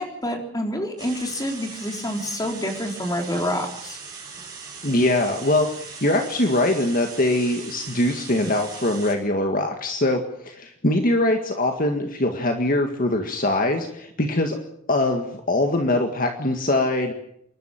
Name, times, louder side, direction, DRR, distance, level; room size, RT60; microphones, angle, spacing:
voice 1, 0.0-4.0, left 1 dB, 20° left, 3 dB, 3.9 m, -28 dB
sound 1, 1.0-9.1, right 5 dB, 20° right, 6.9 m, -39 dB
voice 2, 4.8-14.6 14.9-17.1, left 1 dB, 50° left, 4 dB, 1.9 m, -22 dB
28.0 x 12.5 x 8.9 m, 0.74 s
head